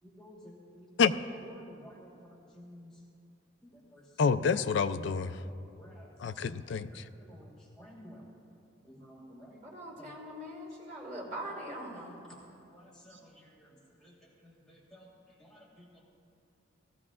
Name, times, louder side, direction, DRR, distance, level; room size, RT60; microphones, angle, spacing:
voice 1, 1.6-2.1 2.5-2.9 3.9-4.0 5.8-6.1 7.3-7.5 7.8-8.2 8.9-9.6 12.7-13.1 14.0-14.1 14.9-15.0 15.4-15.6, equal, 5° left, -7 dB, 1.4 m, -52 dB
voice 2, 4.2-5.3 6.2-7.0, left 5 dB, 60° left, 12 dB, 0.4 m, -28 dB
voice 3, 9.6-12.2 13.1-13.2, right 1 dB, 40° right, -7 dB, 3.3 m, -42 dB
17.5 x 14.0 x 2.5 m, 2.6 s
head